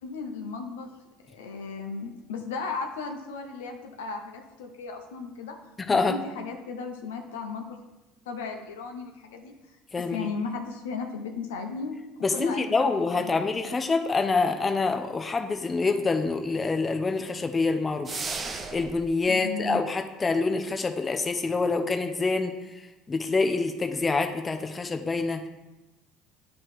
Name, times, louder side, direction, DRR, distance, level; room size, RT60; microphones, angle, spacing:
voice 1, 0.0-0.9 1.3-5.6 5.9-7.8 8.3-9.5 10.1-12.0 12.3-13.4 19.3-19.8, left 4 dB, 85° left, 3 dB, 0.8 m, -35 dB
voice 2, 5.8-6.2 9.9-10.3 12.2-18.1 18.5-22.6 23.1-25.5, left 3 dB, 25° left, 6 dB, 0.6 m, -26 dB
sound 1, 18.0-19.1, right 4 dB, 30° right, 0.7 m, -34 dB
8.8 x 3.0 x 4.8 m, 1.1 s
hypercardioid pair, 80°, 0 cm